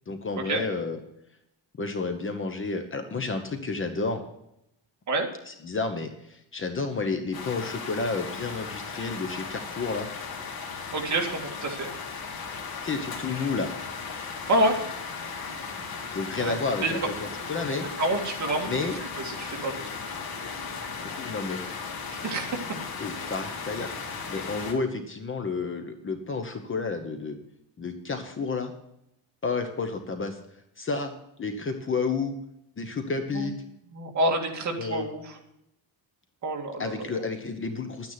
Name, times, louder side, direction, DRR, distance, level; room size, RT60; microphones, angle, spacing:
voice 1, 0.1-1.0 1.8-4.2 5.5-10.1 12.8-13.7 16.1-17.9 18.6-19.0 21.1-21.9 22.7-23.9 24.3-27.4 27.8-28.7 29.4-30.4 30.8-31.1 31.4-32.3 32.8-33.5 34.8-35.1 36.8-38.1, left 4 dB, 25° left, 6 dB, 1.0 m, -31 dB
sound 1, 7.3-24.7, left 5 dB, 50° left, 2.3 m, -36 dB
voice 2, 10.9-11.9 14.5-14.8 16.4-16.5 16.8-16.9 18.0-18.7 19.2-19.9 22.1-22.6 33.3-33.5 33.9-35.4 36.4-37.2, right 1 dB, 35° right, 1 dB, 2.3 m, -27 dB
11.5 x 9.5 x 5.8 m, 0.81 s
cardioid pair, 170°, 46 cm